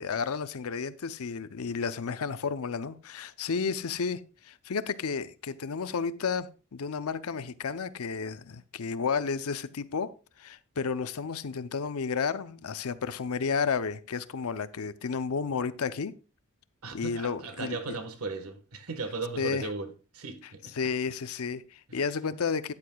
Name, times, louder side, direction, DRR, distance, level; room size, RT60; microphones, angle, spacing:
voice 1, 0.0-16.1 16.9-18.0 19.4-19.7 20.7-22.7, left 5 dB, 80° left, 0.6 m, -32 dB
voice 2, 16.8-20.8, right 3 dB, 85° right, 1.4 m, -37 dB
13.0 x 9.6 x 2.3 m
head